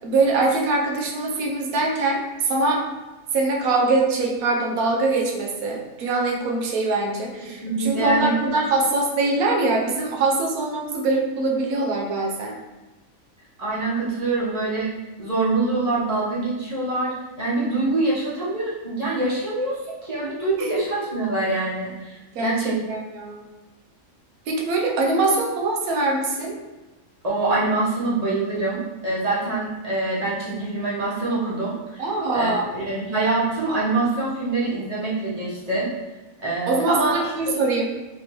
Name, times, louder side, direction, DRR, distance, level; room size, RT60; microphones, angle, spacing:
voice 1, 0.0-2.8 3.3-12.6 20.6-20.7 22.3-22.5 22.9-23.4 24.5-26.6 32.0-32.7 36.7-37.8, right 3 dB, 75° right, 0 dB, 1.1 m, -23 dB
voice 2, 7.6-8.3 13.6-14.9 15.2-22.8 27.2-32.0 32.3-35.9 36.4-37.2, right 3 dB, 30° right, -7 dB, 0.9 m, -25 dB
3.4 x 3.0 x 2.9 m, 1.1 s
omnidirectional pair, 1.5 m